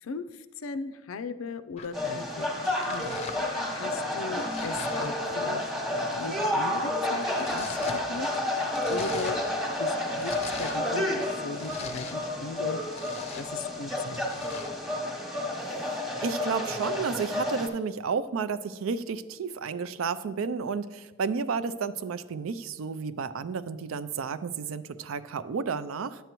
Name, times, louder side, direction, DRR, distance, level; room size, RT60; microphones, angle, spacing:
voice 1, 0.0-5.7 6.1-9.4 9.8-10.3 10.6-12.8 13.4-14.5, left 4 dB, 85° left, 11 dB, 0.4 m, -38 dB
Domestic sounds home sounds, 1.8-15.0, left 5 dB, 30° left, 0.5 m, -46 dB
sound 1, 1.9-17.7, left 1 dB, ahead, 0.9 m, -30 dB
voice 2, 15.8-26.2, right 5 dB, 80° right, 14 dB, 0.4 m, -32 dB
10.0 x 7.9 x 3.0 m, 1.3 s
head